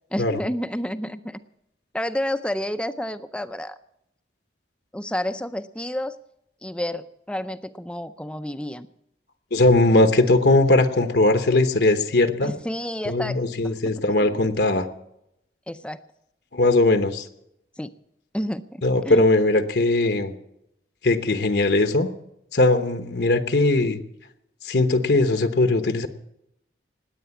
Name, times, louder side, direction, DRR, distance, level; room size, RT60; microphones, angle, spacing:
voice 1, 0.1-1.4 1.9-3.8 4.9-6.2 6.6-8.9 12.4-13.4 13.6-14.4 15.7-16.0 17.8-17.9 18.3-19.2, left 1 dB, 5° left, 11 dB, 0.5 m, -30 dB
voice 2, 9.5-12.5 13.1-14.9 16.5-17.3 18.8-20.3 21.0-22.1 22.5-24.0 24.6-26.1, left 2 dB, 70° left, 8 dB, 1.0 m, -19 dB
19.5 x 8.7 x 7.1 m, 0.81 s
head